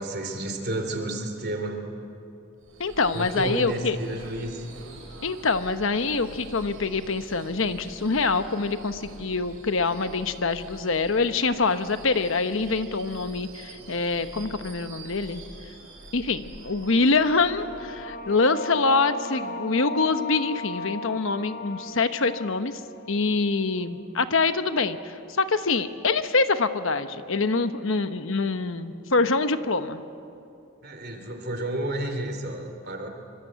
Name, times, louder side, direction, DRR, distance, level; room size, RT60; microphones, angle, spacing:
voice 1, 0.0-1.8 3.1-4.6 30.8-33.1, right 1 dB, 45° right, 5 dB, 3.4 m, -31 dB
Subway metro underground / Screech, 2.6-18.5, right 2 dB, 75° right, 6.9 m, -45 dB
voice 2, 2.8-4.0 5.2-15.4 16.1-22.8 23.1-30.0, left 3 dB, 65° left, 10 dB, 1.0 m, -25 dB
sound 1, 17.0-24.2, left 1 dB, 40° left, 3.7 m, -37 dB
25.5 x 25.0 x 8.0 m, 2.6 s
head